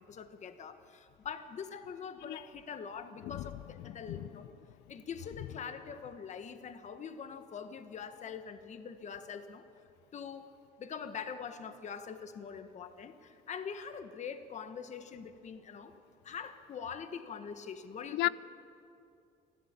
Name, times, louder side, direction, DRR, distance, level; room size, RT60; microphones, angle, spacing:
voice 1, 0.1-4.5 4.9-9.6 10.1-10.5 10.8-18.3, left 6 dB, 45° left, 1.4 m, -43 dB
voice 2, 3.8-4.3 18.1-18.3, left 18 dB, 90° left, 0.5 m, -34 dB
29.0 x 11.5 x 8.8 m
cardioid pair, 110°, 17 cm